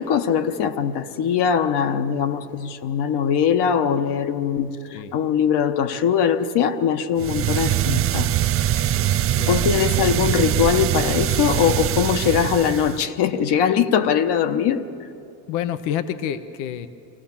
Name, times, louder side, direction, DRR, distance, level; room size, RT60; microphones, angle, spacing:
voice 1, 0.0-8.3 9.5-14.8, left 8 dB, 55° left, 9 dB, 1.2 m, -21 dB
sound 1, 7.2-13.1, right 12 dB, 30° right, 0.4 m, -22 dB
voice 2, 9.4-10.2 15.5-16.9, left 10 dB, 80° left, 11 dB, 0.9 m, -29 dB
24.0 x 16.0 x 7.2 m, 2.6 s
supercardioid pair, 110°, 47 cm